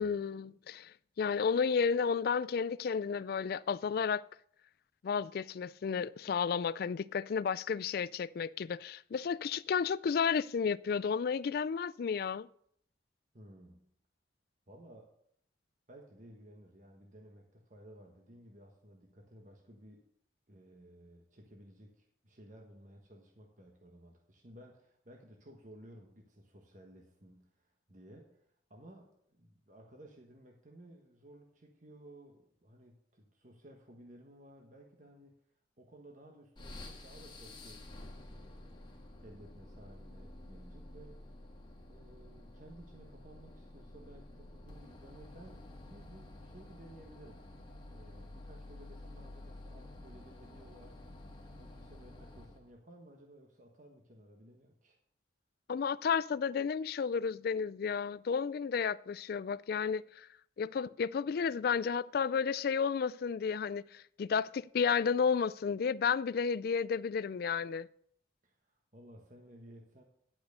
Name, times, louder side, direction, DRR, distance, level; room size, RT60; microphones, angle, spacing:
voice 1, 0.0-4.2 5.0-12.5 55.7-60.3 60.6-67.9, left 6 dB, 50° left, 0.3 m, -32 dB
voice 2, 13.3-13.9 14.7-15.1 15.9-20.0 20.5-28.4 28.7-35.4 35.8-37.9 38.3-38.9 39.2-41.2 41.9-47.5 47.9-51.0 51.5-55.0 68.4-70.0, right 1 dB, 40° right, 1.4 m, -56 dB
sound 1, 36.6-52.7, left 1 dB, 25° left, 1.5 m, -51 dB
10.5 x 6.1 x 6.5 m
head